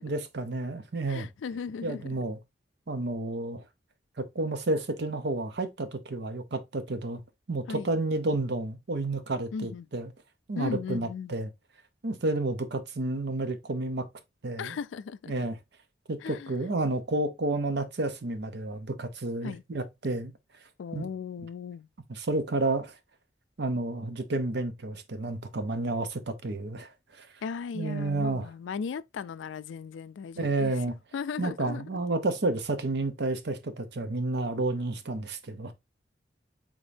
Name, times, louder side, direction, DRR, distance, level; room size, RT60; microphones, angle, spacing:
voice 1, 0.0-1.3 1.8-2.4 2.9-3.6 4.2-7.2 7.5-10.1 10.5-11.5 12.0-14.1 14.4-14.8 15.3-15.6 16.1-20.3 20.9-21.1 22.1-22.9 23.6-26.9 27.2-27.3 27.7-28.5 30.4-31.0 31.4-35.7, right 2 dB, 60° right, 0.7 m, -30 dB
voice 2, 1.1-2.2 7.7-7.9 9.5-9.9 10.6-11.3 14.6-15.3 16.2-16.5 19.4-19.6 20.8-21.9 27.4-30.8 31.1-32.0, left 6 dB, 80° left, 0.3 m, -37 dB
5.1 x 3.6 x 2.6 m
head